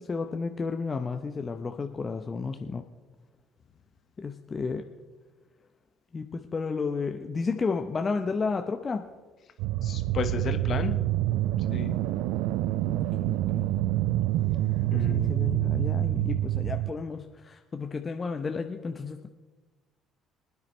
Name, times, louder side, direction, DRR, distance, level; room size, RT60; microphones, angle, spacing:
voice 1, 0.0-2.8 4.2-4.9 6.1-9.0 12.9-13.7 14.8-19.3, left 4 dB, 35° left, 5 dB, 0.8 m, -32 dB
sound 1, 9.6-16.9, right 15 dB, 70° right, 0.4 m, -27 dB
voice 2, 9.8-11.0 11.7-12.0 14.5-15.4, left 7 dB, 50° left, 8 dB, 1.2 m, -34 dB
24.5 x 9.6 x 3.2 m, 1.3 s
hypercardioid pair, 55°, 0 cm